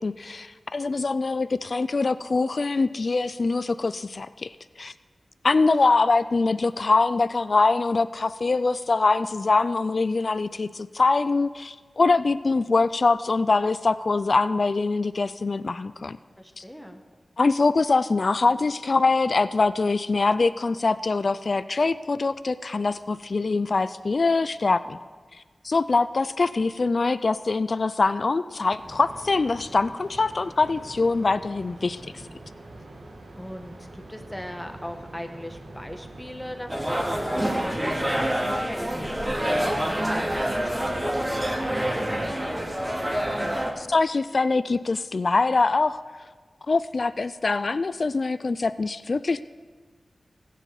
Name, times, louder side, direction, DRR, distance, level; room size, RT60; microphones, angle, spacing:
voice 1, 0.0-4.5 4.8-4.9 5.4-16.2 16.6-16.7 17.4-25.0 25.6-32.0 43.8-46.0 46.7-49.4, left 3 dB, 65° left, 14 dB, 0.3 m, -23 dB
voice 2, 16.4-17.0 33.4-42.1, equal, 10° left, 4 dB, 1.5 m, -39 dB
sound 1, 28.8-38.3, right 2 dB, 90° right, 1.7 m, -44 dB
sound 2, 36.7-43.7, right 1 dB, 20° right, 2.4 m, -27 dB
16.0 x 7.5 x 6.9 m, 1.5 s
cardioid pair, 45°, 0 cm